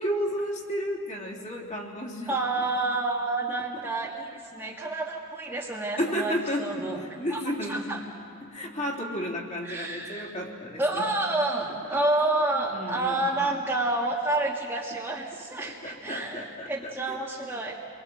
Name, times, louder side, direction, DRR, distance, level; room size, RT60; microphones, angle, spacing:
voice 1, 0.0-2.7 3.7-3.9 4.3-4.4 6.0-8.1 8.4-11.1 11.6-12.0 12.7-13.3 15.6-17.2, equal, 30° left, -2 dB, 3.5 m, -33 dB
voice 2, 2.3-7.0 7.3-7.4 7.7-8.0 9.6-10.3 10.8-17.8, right 2 dB, 10° right, -3 dB, 1.8 m, -29 dB
29.0 x 23.5 x 7.7 m, 2.4 s
head